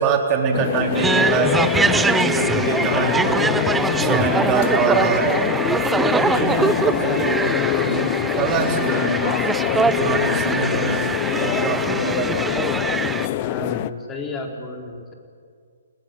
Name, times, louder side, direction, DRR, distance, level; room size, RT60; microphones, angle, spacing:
voice 1, 0.0-3.5 4.0-5.4 6.1-7.4 7.9-8.1 8.4-9.4 10.0-11.1 11.3-12.7 13.6-13.8, right 6 dB, 30° right, 2 dB, 4.1 m, -24 dB
sound 1, 0.5-13.9, left 14 dB, 35° left, 0.8 m, -24 dB
sound 2, 1.0-13.3, right 4 dB, 10° right, 0.7 m, -23 dB
voice 2, 4.1-4.6 5.9-6.8 9.7-10.4 13.4-15.1, left 3 dB, 15° left, 2 dB, 4.2 m, -33 dB
29.5 x 19.5 x 9.3 m, 2.1 s
figure-of-eight pair, 135°, 0 cm